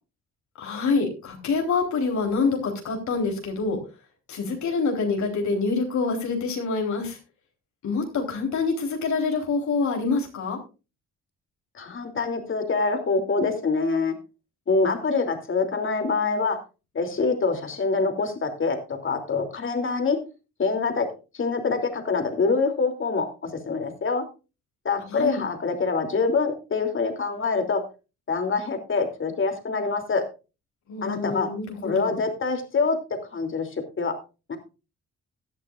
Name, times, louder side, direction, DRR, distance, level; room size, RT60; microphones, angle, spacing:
voice 1, 0.6-3.8 4.3-7.2 7.8-10.6 25.1-25.4 30.9-32.1, left 4 dB, 70° left, 2 dB, 3.9 m, -26 dB
voice 2, 11.7-14.2 14.7-16.6 16.9-20.2 20.6-21.1 21.3-24.2 24.8-27.8 28.3-30.2 31.0-31.5 31.8-33.0 33.3-34.1 34.5-34.6, left 4 dB, 40° left, 5 dB, 3.0 m, -25 dB
17.5 x 11.0 x 2.5 m, 0.30 s
cardioid pair, 90°, 30 cm